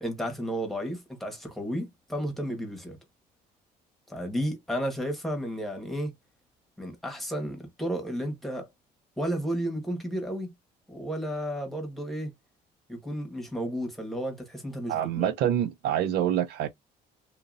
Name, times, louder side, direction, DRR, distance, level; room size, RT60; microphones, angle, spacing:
voice 1, 0.0-3.0 4.1-6.1 6.8-8.7 9.2-10.5 10.9-12.3 12.9-15.3, equal, ahead, 1.2 m, -32 dB
voice 2, 14.9-16.7, right 10 dB, 75° right, 0.5 m, -26 dB
2.8 x 2.7 x 2.5 m
cardioid pair, 110°, 17 cm